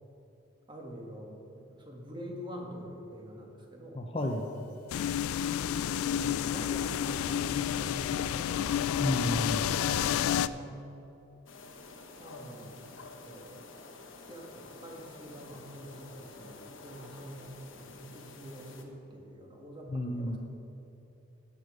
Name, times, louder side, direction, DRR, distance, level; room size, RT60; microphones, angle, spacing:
voice 1, 0.7-4.0 6.2-8.7 10.0-10.9 12.2-12.8 13.2-13.8 14.1-20.4, equal, 20° right, 0 dB, 1.6 m, -46 dB
voice 2, 3.9-4.5 9.0-9.7 19.9-20.4, left 1 dB, 25° left, 2 dB, 0.7 m, -31 dB
sound 1, 4.9-10.5, left 9 dB, 90° left, 0.3 m, -30 dB
sound 2, 11.5-18.8, left 3 dB, 65° left, 1.1 m, -49 dB
13.0 x 8.5 x 5.0 m, 3.0 s
head